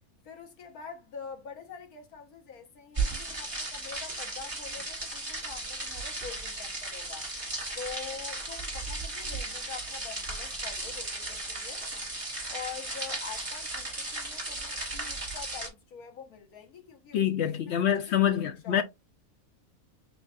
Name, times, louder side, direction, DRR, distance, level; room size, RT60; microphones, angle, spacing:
voice 1, 0.2-7.3 7.7-11.8 12.5-18.4 18.6-18.8, left 6 dB, 85° left, 1.6 m, -45 dB
sound 1, 2.9-15.7, right 2 dB, 25° right, 1.5 m, -36 dB
voice 2, 17.1-18.8, left 10 dB, 65° left, 0.7 m, -26 dB
6.9 x 2.4 x 2.4 m
omnidirectional pair, 1.5 m